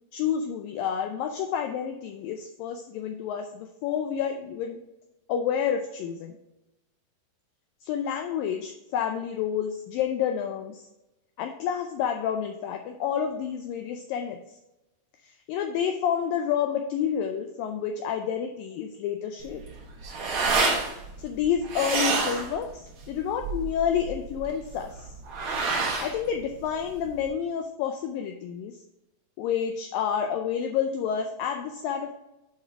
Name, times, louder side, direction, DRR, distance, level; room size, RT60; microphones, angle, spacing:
voice 1, 0.1-4.8 5.3-6.3 7.8-10.9 11.4-14.6 15.2-19.6 21.2-25.1 26.0-28.8 29.4-32.1, left 8 dB, 85° left, 5 dB, 2.0 m, -29 dB
sound 1, 19.4-27.3, right 3 dB, 90° right, 1.2 m, -29 dB
8.2 x 5.3 x 3.4 m, 0.95 s
omnidirectional pair, 4.7 m